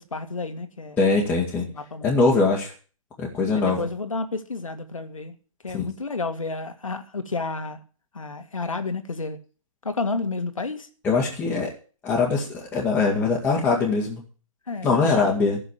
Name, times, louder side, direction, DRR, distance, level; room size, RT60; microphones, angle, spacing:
voice 1, 0.0-1.0 1.7-2.4 3.5-5.3 5.6-7.8 8.1-9.4 9.8-10.9 14.7-15.3, left 3 dB, 70° left, 1.9 m, -31 dB
voice 2, 1.0-1.7 2.0-2.7 3.2-3.8 5.7-5.8 11.0-11.7 12.0-14.2 14.8-15.6, left 4 dB, 10° left, 2.3 m, -22 dB
13.5 x 6.9 x 8.5 m
figure-of-eight pair, 135°, 18 cm